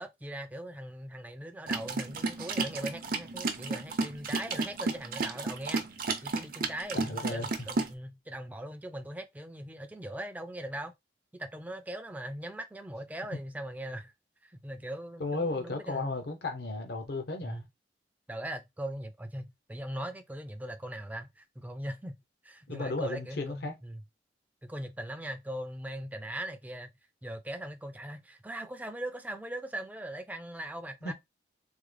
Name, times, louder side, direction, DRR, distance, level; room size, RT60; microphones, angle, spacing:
voice 1, 0.0-5.8 6.2-10.9 11.3-14.1 14.4-16.1 17.4-17.6 18.3-22.1 22.4-24.0 24.6-26.9 27.2-31.1, right 1 dB, 10° right, 0.4 m, -40 dB
sound 1, 1.7-7.9, right 3 dB, 55° right, 0.6 m, -32 dB
voice 2, 6.9-7.5 15.2-17.6 22.7-23.7 31.0-31.1, left 2 dB, 60° left, 0.7 m, -34 dB
3.6 x 2.0 x 3.2 m
head